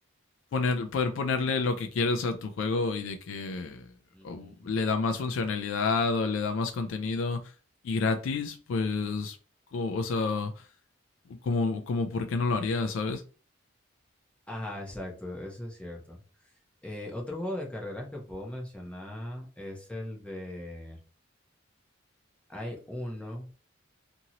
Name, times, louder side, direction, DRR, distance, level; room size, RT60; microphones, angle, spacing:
voice 1, 0.5-3.9 4.2-7.5 7.8-9.4 9.7-10.7 11.4-13.2, left 4 dB, 75° left, 0.3 m, -29 dB
voice 2, 4.1-4.8 14.5-16.2 16.8-21.0 22.5-23.5, left 1 dB, 5° left, 0.7 m, -38 dB
2.8 x 2.6 x 2.8 m
head